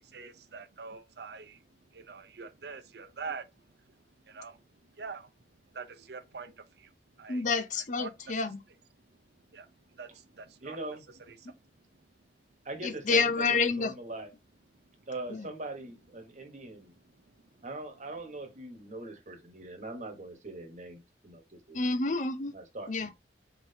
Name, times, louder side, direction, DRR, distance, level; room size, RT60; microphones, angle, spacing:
voice 1, 0.0-1.6 1.9-3.5 4.2-5.3 5.7-6.9 7.2-7.4 8.0-8.3 9.5-10.8 11.4-11.6 16.3-16.4 17.3-17.6, right 4 dB, 65° right, 0.6 m, -45 dB
voice 2, 7.3-8.6 12.8-13.9 15.3-15.5 21.7-22.5 22.9-23.1, left 4 dB, 45° left, 0.7 m, -28 dB
voice 3, 10.6-11.0 12.6-14.3 15.1-16.9 17.6-21.8 22.5-23.1, right 2 dB, 40° right, 1.3 m, -42 dB
4.4 x 3.8 x 2.8 m
head